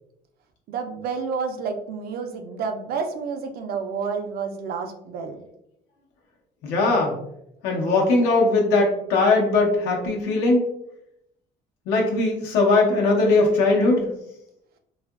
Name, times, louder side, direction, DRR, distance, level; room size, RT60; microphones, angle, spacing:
voice 1, 0.7-5.4, right 5 dB, 65° right, 5 dB, 0.4 m, -30 dB
voice 2, 6.6-7.1 7.6-10.7 11.9-14.1, left 3 dB, 90° left, 0 dB, 0.8 m, -20 dB
2.8 x 2.4 x 2.3 m, 0.79 s
cardioid pair, 110°, 17 cm